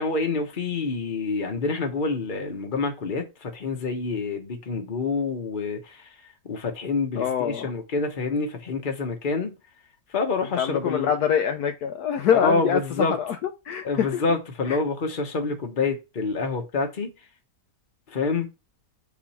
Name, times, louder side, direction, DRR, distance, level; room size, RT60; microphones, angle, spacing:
voice 1, 0.0-6.1 6.4-9.6 10.1-11.1 12.3-13.1 13.8-17.1 18.1-18.5, left 4 dB, 35° left, 1.1 m, -27 dB
voice 2, 7.2-7.7 10.4-14.2 14.6-14.8, left 8 dB, 70° left, 1.1 m, -25 dB
7.2 x 3.8 x 4.3 m
omnidirectional pair, 1.8 m